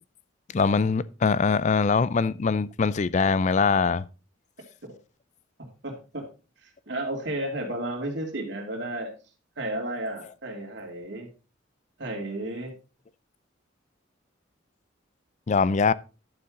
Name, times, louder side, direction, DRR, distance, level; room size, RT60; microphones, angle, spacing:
voice 1, 0.5-4.0 15.5-15.9, left 5 dB, 40° left, 0.4 m, -22 dB
voice 2, 5.8-6.3 6.6-9.1 9.6-11.3 12.0-12.7, right 1 dB, 60° right, 2.7 m, -33 dB
11.5 x 7.0 x 3.8 m
head